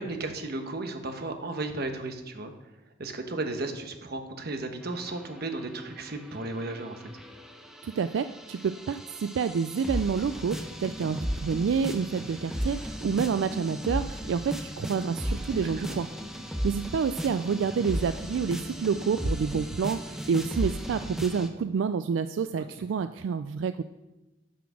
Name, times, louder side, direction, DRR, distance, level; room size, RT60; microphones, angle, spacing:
voice 1, 0.0-2.5 3.0-7.0 15.6-16.0 22.6-22.8, right 2 dB, 60° right, 6 dB, 1.1 m, -35 dB
sound 1, 4.9-21.5, equal, 5° right, 0.8 m, -35 dB
voice 2, 7.8-16.1 16.6-23.8, right 6 dB, 90° right, 11 dB, 0.3 m, -28 dB
9.4 x 5.9 x 6.2 m, 1.0 s
head